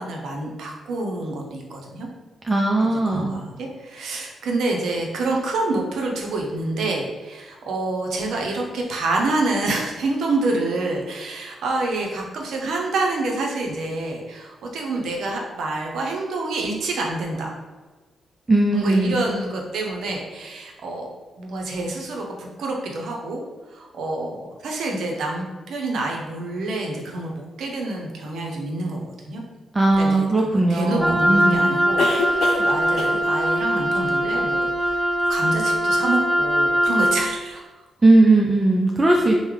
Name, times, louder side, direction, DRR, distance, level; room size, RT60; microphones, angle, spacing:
voice 1, 0.0-2.1 2.8-17.5 18.7-21.1 21.4-23.4 23.7-29.4 29.9-35.0 35.3-37.6, right 2 dB, 75° right, 0 dB, 0.6 m, -27 dB
voice 2, 2.4-3.3 18.5-19.2 29.7-31.7 38.0-39.4, right 2 dB, 30° right, 0 dB, 0.4 m, -18 dB
sound 1, 29.9-30.0 32.0-32.7 33.0-33.3 35.3-35.4 35.6-35.7, left 3 dB, 70° left, 0.5 m, -27 dB
Wind instrument woodwind instrument, 31.0-37.3, equal, 10° right, 1.2 m, -21 dB
3.3 x 2.1 x 3.2 m, 1.3 s
hypercardioid pair, 45°, 0 cm